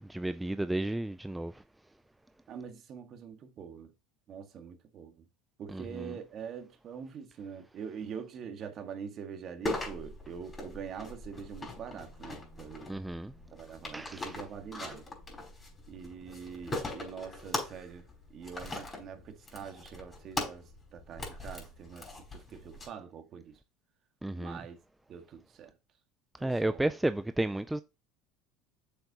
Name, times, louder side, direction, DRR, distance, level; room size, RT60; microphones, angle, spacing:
voice 1, 0.1-1.5 5.7-6.1 12.9-13.3 13.9-14.3 24.2-24.6 26.4-27.8, right 1 dB, 5° right, 0.3 m, -32 dB
voice 2, 2.5-3.9 4.3-5.3 5.6-12.9 13.5-15.1 15.9-23.6 24.3-24.8 25.1-25.7 26.4-26.9, right 7 dB, 40° right, 1.7 m, -44 dB
sound 1, 9.6-22.9, left 2 dB, 20° left, 4.7 m, -41 dB
7.7 x 7.1 x 2.9 m
supercardioid pair, 125°, 0 cm